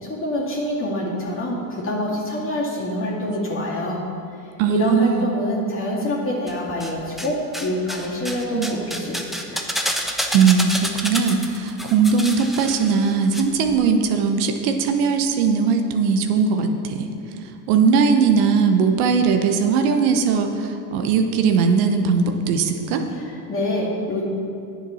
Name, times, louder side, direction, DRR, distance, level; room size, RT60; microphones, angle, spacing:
voice 1, 0.0-4.0 4.7-9.6 23.2-24.2, left 1 dB, 25° left, -5 dB, 2.3 m, -26 dB
voice 2, 4.6-5.3 8.5-8.8 10.3-17.1 17.7-23.0, right 5 dB, 65° right, 5 dB, 1.0 m, -19 dB
sound 1, 6.5-7.3 7.5-13.4 13.7-13.8, equal, ahead, 0.9 m, -28 dB
9.5 x 7.2 x 5.7 m, 2.6 s
hypercardioid pair, 80°, 48 cm